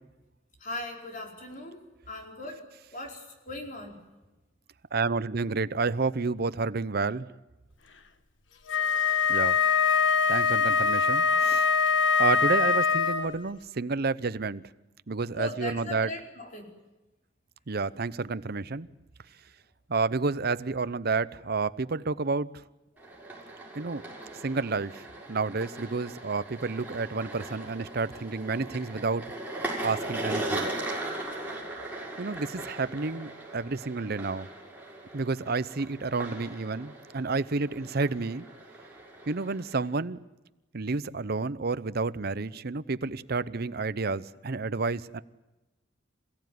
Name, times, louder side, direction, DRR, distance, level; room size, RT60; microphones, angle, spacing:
voice 1, 0.6-2.6 2.9-4.0 15.3-16.7, left 1 dB, 45° left, 2 dB, 4.9 m, -39 dB
voice 2, 4.9-7.3 9.3-9.6 10.3-11.7 12.2-14.6 15.1-16.1 17.7-18.9 19.9-22.6 23.7-24.0 24.4-29.2 29.8-30.7 32.2-34.5 35.1-38.4 39.3-40.2 40.7-45.2, right 4 dB, 55° right, 15 dB, 0.8 m, -30 dB
Wind instrument woodwind instrument, 8.7-13.4, left 6 dB, 80° left, 1.5 m, -23 dB
sound 1, 23.0-39.9, right 1 dB, 10° right, 6.5 m, -39 dB
27.5 x 16.5 x 9.5 m, 1.1 s
head